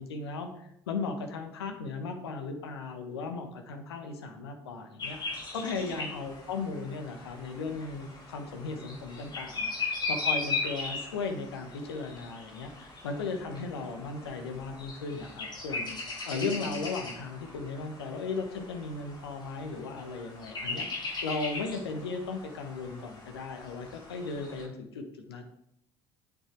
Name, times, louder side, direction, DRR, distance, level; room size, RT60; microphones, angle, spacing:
voice 1, 0.0-25.4, left 4 dB, 75° left, 6 dB, 1.1 m, -36 dB
sound 1, 5.0-24.6, left 3 dB, 35° left, 3.3 m, -38 dB
8.4 x 6.7 x 4.5 m, 0.74 s
figure-of-eight pair, 55°, 13 cm